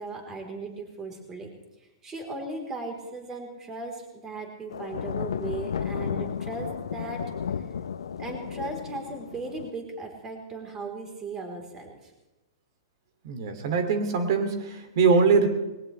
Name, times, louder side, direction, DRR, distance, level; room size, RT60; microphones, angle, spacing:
voice 1, 0.0-1.5 2.0-7.2 8.2-12.1, right 3 dB, 20° right, 2 dB, 3.9 m, -37 dB
sound 1, 4.7-9.7, left 7 dB, 85° left, 0.8 m, -33 dB
voice 2, 13.2-15.5, right 5 dB, 60° right, 7 dB, 2.7 m, -22 dB
21.0 x 18.0 x 3.3 m, 1.0 s
hypercardioid pair, 130°, 3 cm